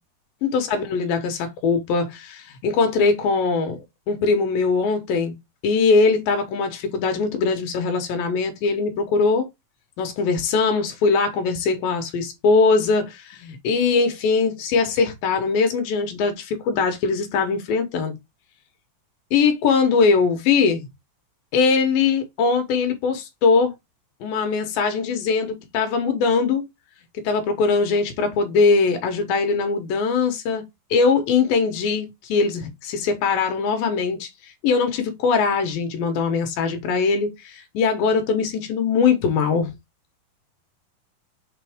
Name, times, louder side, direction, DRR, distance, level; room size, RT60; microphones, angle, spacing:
voice 1, 0.4-3.8 4.1-5.4 5.6-9.5 10.0-18.1 19.3-20.9 21.5-23.7 24.2-26.6 27.2-30.6 30.9-39.7, left 4 dB, 80° left, 2.9 m, -21 dB
6.7 x 4.2 x 3.5 m
omnidirectional pair, 4.1 m